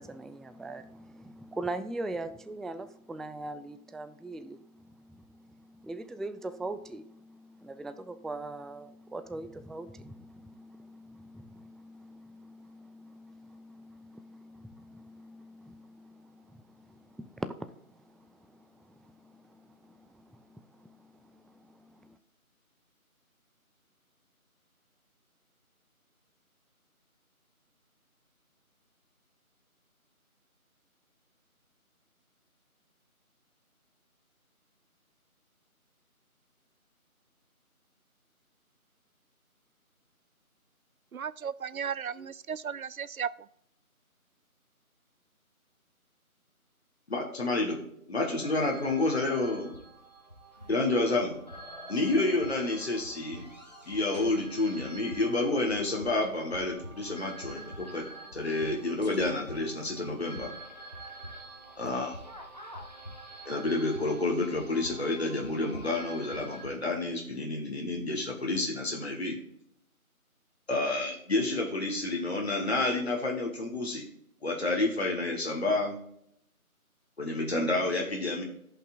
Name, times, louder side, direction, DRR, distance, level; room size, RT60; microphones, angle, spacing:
voice 1, 0.0-22.2, right 2 dB, ahead, 13 dB, 0.3 m, -42 dB
voice 2, 41.1-43.3, right 7 dB, 70° right, 18 dB, 0.5 m, -35 dB
voice 3, 47.1-47.8 48.1-49.7 50.7-51.4 51.9-53.4 53.9-58.1 58.3-60.5 61.8-62.2 63.4-69.4 70.7-74.1 74.4-76.0 77.2-78.4, left 2 dB, 45° left, 0 dB, 1.3 m, -29 dB
sound 1, 48.2-66.7, right 1 dB, 30° left, 1.0 m, -46 dB
14.5 x 5.5 x 2.4 m, 0.71 s
figure-of-eight pair, 170°, 44 cm